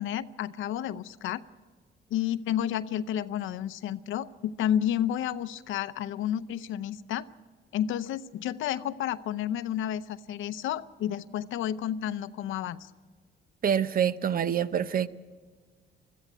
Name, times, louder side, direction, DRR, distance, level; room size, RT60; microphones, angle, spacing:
voice 1, 0.0-1.4 2.1-7.3 7.7-12.9, left 10 dB, 85° left, 0.7 m, -31 dB
voice 2, 13.6-15.1, right 8 dB, 45° right, 0.7 m, -26 dB
21.5 x 14.5 x 9.1 m
cardioid pair, 90°, 20 cm